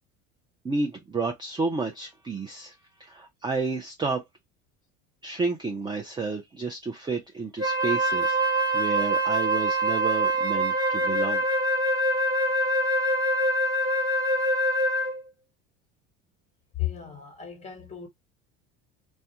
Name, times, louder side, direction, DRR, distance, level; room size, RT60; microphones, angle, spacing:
voice 1, 0.6-2.7 3.0-4.2 5.2-8.4 8.7-11.4, right 3 dB, 15° right, 0.5 m, -31 dB
Wind instrument woodwind instrument, 7.6-15.2, right 1 dB, 40° right, 1.3 m, -24 dB
voice 2, 16.8-18.1, left 12 dB, 20° left, 1.2 m, -34 dB
2.3 x 2.2 x 2.7 m
supercardioid pair, 100°, 35 cm